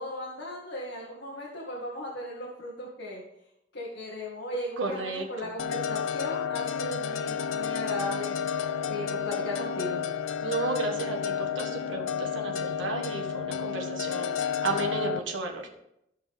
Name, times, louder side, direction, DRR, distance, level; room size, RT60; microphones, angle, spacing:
voice 1, 0.0-3.2 3.7-8.4 8.8-10.0, left 1 dB, 65° left, -5 dB, 1.8 m, -36 dB
voice 2, 4.8-5.2 10.4-15.6, right 3 dB, 85° right, 2 dB, 1.5 m, -33 dB
sound 1, 5.6-15.2, left 7 dB, 90° left, 0.4 m, -31 dB
15.0 x 5.2 x 3.6 m, 0.83 s
head